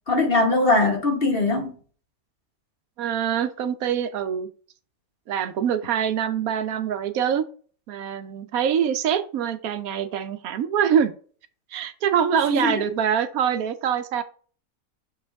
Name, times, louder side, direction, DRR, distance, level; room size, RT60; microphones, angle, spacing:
voice 1, 0.1-1.7 12.5-12.8, left 2 dB, 45° left, 1.7 m, -21 dB
voice 2, 3.0-4.5 5.3-7.4 7.9-11.1 11.7-14.2, right 8 dB, 85° right, 1.2 m, -24 dB
6.5 x 4.8 x 3.4 m
omnidirectional pair, 1.5 m